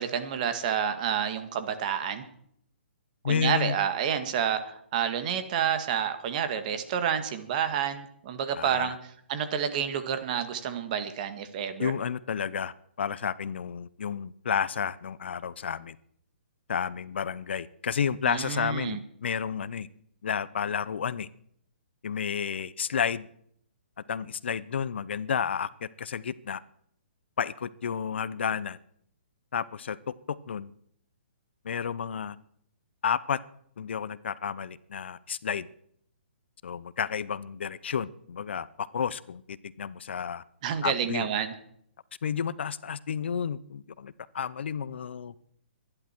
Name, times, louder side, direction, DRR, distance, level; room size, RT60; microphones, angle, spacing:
voice 1, 0.0-2.2 3.2-9.0 9.3-11.9 18.3-19.0 40.6-41.5, right 8 dB, 40° right, 9 dB, 1.9 m, -29 dB
voice 2, 3.2-3.8 8.6-9.0 11.8-16.0 16.7-19.9 20.2-21.3 22.0-23.3 24.1-26.6 27.4-28.8 29.5-30.0 30.3-30.7 31.6-32.4 33.0-33.4 33.8-35.7 36.6-40.4 40.8-41.3 42.2-45.3, left 7 dB, 70° left, 18 dB, 0.7 m, -31 dB
24.0 x 11.0 x 4.5 m, 0.67 s
hypercardioid pair, 145°, 6 cm